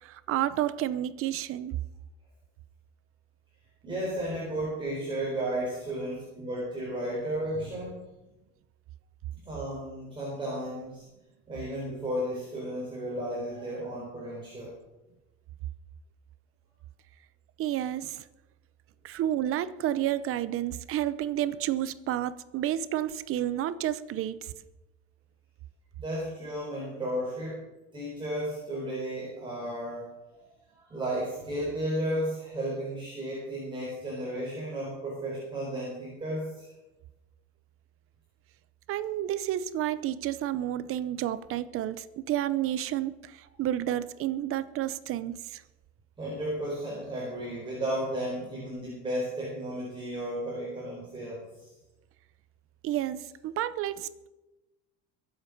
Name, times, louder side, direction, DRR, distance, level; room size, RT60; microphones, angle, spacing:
voice 1, 0.0-1.8 17.6-18.2 19.0-24.5 38.9-45.6 52.8-54.3, right 12 dB, 45° right, 15 dB, 0.8 m, -30 dB
voice 2, 3.8-7.9 9.4-11.0 11.5-14.7 26.0-27.6 27.9-30.5 30.7-36.7 46.2-51.7, right 1 dB, 15° right, -5 dB, 4.2 m, -34 dB
22.5 x 8.1 x 5.3 m, 1.0 s
cardioid pair, 155°, 32 cm